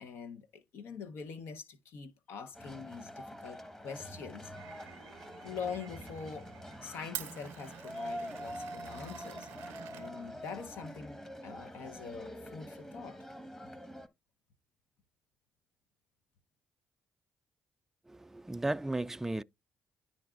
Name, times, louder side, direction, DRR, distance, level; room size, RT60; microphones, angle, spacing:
voice 1, 0.0-4.5 5.4-6.5 6.8-13.3, left 6 dB, 70° left, 0.7 m, -44 dB
sound 1, 2.5-14.1, equal, 10° left, 1.1 m, -45 dB
Glass, 4.5-10.8, right 13 dB, 80° right, 0.6 m, -49 dB
voice 2, 18.1-19.4, right 2 dB, 10° right, 0.3 m, -35 dB
11.0 x 3.9 x 2.3 m
hypercardioid pair, 50°, 4 cm